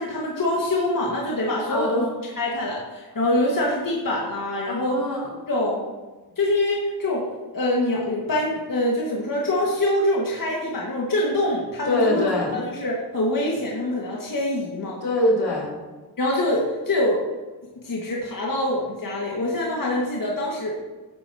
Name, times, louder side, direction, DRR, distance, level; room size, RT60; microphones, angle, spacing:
voice 1, 0.0-2.1 2.4-5.0 5.5-5.8 6.4-7.2 7.5-12.2 12.5-15.0 16.2-17.2 17.8-20.7, left 1 dB, 55° left, -4 dB, 2.1 m, -24 dB
voice 2, 1.7-2.1 4.7-5.3 11.8-12.6 15.0-15.7, left 2 dB, 80° left, -4 dB, 3.1 m, -23 dB
13.5 x 8.3 x 3.0 m, 1.2 s
cardioid pair, 55°, 39 cm